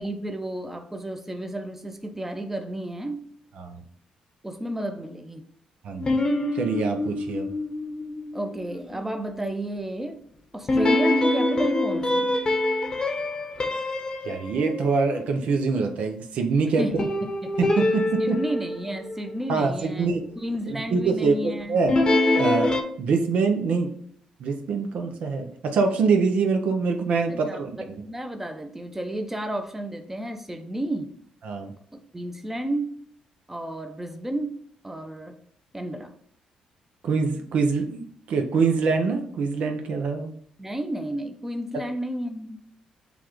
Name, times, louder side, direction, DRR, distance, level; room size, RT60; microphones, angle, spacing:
voice 1, 0.0-3.2 4.4-5.5 8.3-10.2 10.5-12.4 16.8-17.1 17.4-17.6 18.2-20.1 20.4-21.8 27.3-31.1 31.9-32.9 33.5-34.6 34.8-35.4 35.7-36.1 40.6-42.6, right 1 dB, 10° right, 5 dB, 0.7 m, -32 dB
voice 2, 5.8-6.2 6.5-7.5 14.2-17.0 17.6-18.4 19.5-20.2 20.7-22.0 22.3-23.9 24.4-28.0 31.4-31.7 37.0-40.3 41.7-41.9, right 4 dB, 70° right, 4 dB, 0.6 m, -25 dB
sound 1, 6.0-9.2 10.7-15.2 17.0-19.6 21.9-22.8, left 2 dB, 35° left, 0.8 m, -25 dB
6.9 x 2.4 x 3.1 m, 0.63 s
supercardioid pair, 60°, 2 cm